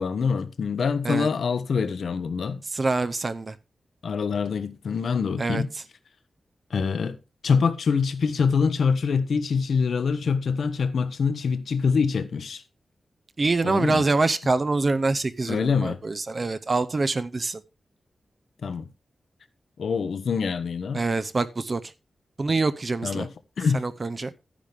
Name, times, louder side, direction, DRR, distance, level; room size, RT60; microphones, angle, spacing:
voice 1, 0.0-2.6 4.0-5.7 6.7-7.2 7.4-12.6 13.6-14.0 15.5-16.0 18.6-18.9 19.8-21.0 23.0-23.3 23.6-23.8, left 5 dB, 80° left, 1.1 m, -25 dB
voice 2, 2.7-3.5 5.4-5.8 13.4-17.6 20.9-21.8 22.4-23.3 23.7-24.3, right 3 dB, 35° right, 0.7 m, -25 dB
12.0 x 10.0 x 3.5 m
wide cardioid pair, 125°, 0 cm